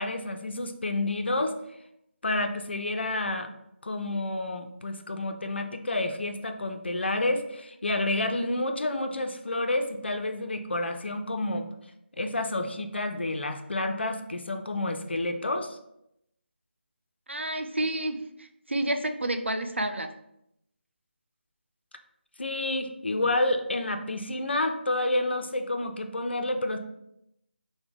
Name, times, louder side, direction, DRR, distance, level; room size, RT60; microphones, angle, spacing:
voice 1, 0.0-1.5 2.2-3.5 3.8-11.7 12.2-15.8 22.4-26.8, left 2 dB, 65° left, 6 dB, 0.5 m, -29 dB
voice 2, 17.3-20.1, right 1 dB, 80° right, 6 dB, 0.4 m, -30 dB
4.7 x 2.1 x 3.5 m, 0.80 s
figure-of-eight pair, 155°, 6 cm